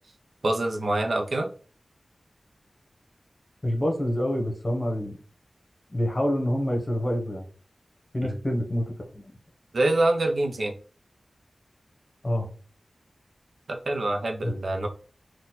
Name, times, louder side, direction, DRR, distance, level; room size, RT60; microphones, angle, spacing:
voice 1, 0.4-1.5 8.2-8.4 9.7-10.7 13.7-14.9, right 2 dB, 70° right, 3 dB, 0.7 m, -25 dB
voice 2, 3.6-5.2 5.9-7.5 8.1-9.2 12.2-12.5 14.4-14.5, equal, 30° left, 2 dB, 1.4 m, -27 dB
4.2 x 2.5 x 4.0 m, 0.39 s
wide cardioid pair, 70°, 0 cm